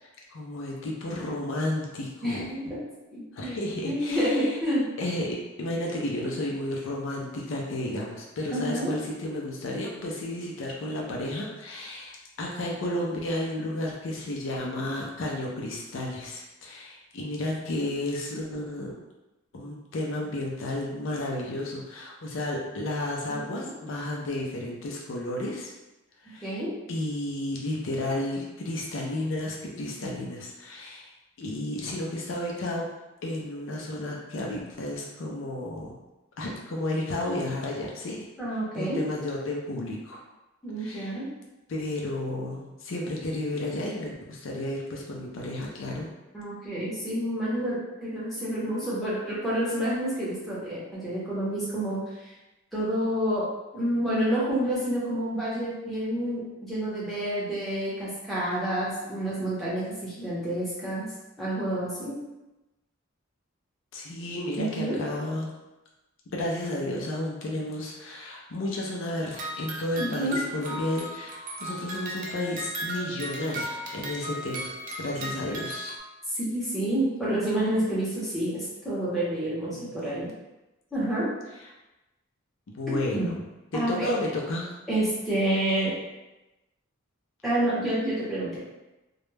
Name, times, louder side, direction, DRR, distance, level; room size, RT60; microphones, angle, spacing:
voice 1, 0.0-2.7 3.3-4.6 5.0-18.9 19.5-25.7 26.2-26.6 26.9-31.1 31.4-32.9 33.2-36.0 36.4-38.3 38.7-40.2 40.8-41.2 41.7-46.1 63.9-65.5 66.3-75.9 79.6-80.1 82.7-83.4 83.7-84.7, left 1 dB, 65° left, -1 dB, 0.4 m, -32 dB
voice 2, 2.2-2.6 3.1-3.6 3.8-4.9 8.5-8.9 23.3-23.7 26.3-26.7 38.4-39.0 40.6-41.3 46.3-52.3 52.7-53.5 53.7-61.1 61.4-62.2 64.5-65.0 70.0-70.4 76.3-80.3 80.9-81.3 82.9-83.3 83.7-84.1 84.9-85.9 87.4-88.6, right 1 dB, ahead, -10 dB, 0.7 m, -29 dB
sound 1, 69.3-76.0, right 1 dB, 40° right, 0.3 m, -36 dB
2.2 x 2.0 x 3.1 m, 1.0 s
head